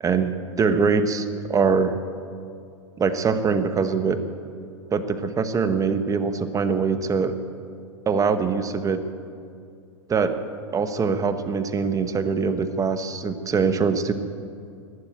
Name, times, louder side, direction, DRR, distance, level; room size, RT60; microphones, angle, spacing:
voice 1, 0.0-2.0 3.0-4.2 4.9-7.4 8.1-9.0 10.1-10.4 10.7-14.1, right 5 dB, 20° right, 10 dB, 1.0 m, -23 dB
12.5 x 11.5 x 9.1 m, 2.4 s
hypercardioid pair, 120°, 16 cm